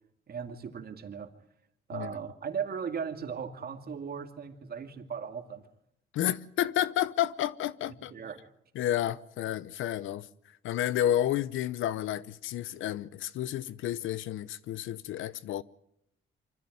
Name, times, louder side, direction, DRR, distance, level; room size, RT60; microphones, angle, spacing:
voice 1, 0.3-1.3 1.9-5.6 8.1-8.5, right 6 dB, 50° right, 2.4 m, -37 dB
voice 2, 6.1-8.1 8.7-10.3 10.6-15.6, left 12 dB, 80° left, 0.8 m, -31 dB
24.5 x 14.5 x 9.3 m
cardioid pair, 90°, 20 cm